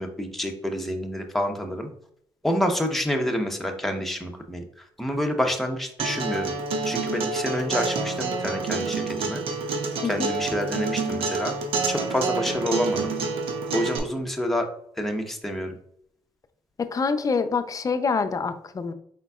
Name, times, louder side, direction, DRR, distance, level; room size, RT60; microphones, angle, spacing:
voice 1, 0.0-1.9 2.4-4.6 5.0-6.5 6.8-9.4 10.0-11.5 11.9-13.1 13.7-14.7 15.0-15.7, equal, ahead, 2 dB, 0.9 m, -28 dB
Acoustic guitar, 6.0-14.0, right 4 dB, 75° right, 0.8 m, -28 dB
voice 2, 16.8-18.9, left 5 dB, 35° left, 9 dB, 0.6 m, -26 dB
5.1 x 4.0 x 2.3 m, 0.67 s
supercardioid pair, 70°, 10 cm